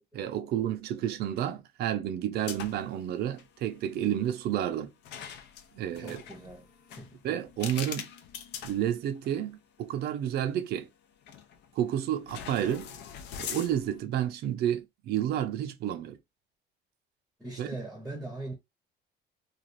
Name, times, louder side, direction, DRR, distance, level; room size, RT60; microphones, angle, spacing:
voice 1, 0.1-4.9 5.7-6.2 7.2-8.1 8.6-10.9 11.7-12.9 13.4-16.2 17.6-17.7, right 10 dB, 55° right, 0.5 m, -30 dB
sound 1, 2.4-3.0 3.2-3.5 5.0-9.4 10.0-10.1 11.3-11.7 12.3-14.0, left 8 dB, 65° left, 0.6 m, -42 dB
voice 2, 6.0-6.7 7.0-7.2 17.4-18.5, right 2 dB, 5° right, 0.7 m, -40 dB
3.2 x 2.4 x 2.5 m
cardioid pair, 160°, 19 cm